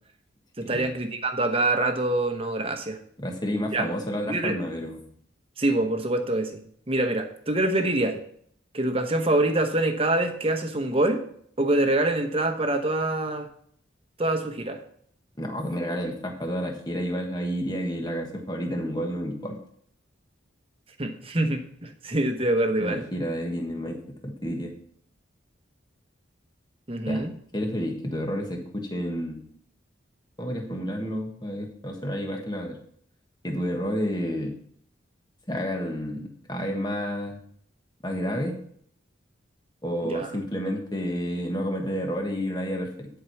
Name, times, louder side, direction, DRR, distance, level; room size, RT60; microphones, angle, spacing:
voice 1, 0.6-3.0 3.7-3.9 4.3-4.5 5.6-6.6 6.9-8.2 8.7-11.2 11.6-13.5 14.2-14.8 21.0-23.0 26.9-27.3 40.0-40.3, right 2 dB, 30° right, 6 dB, 1.0 m, -25 dB
voice 2, 3.2-5.1 15.4-19.6 22.8-24.7 27.1-29.4 30.4-32.8 33.4-34.6 35.5-37.4 38.0-38.6 39.8-43.1, equal, 20° left, 2 dB, 1.4 m, -30 dB
11.0 x 4.8 x 5.8 m, 0.63 s
head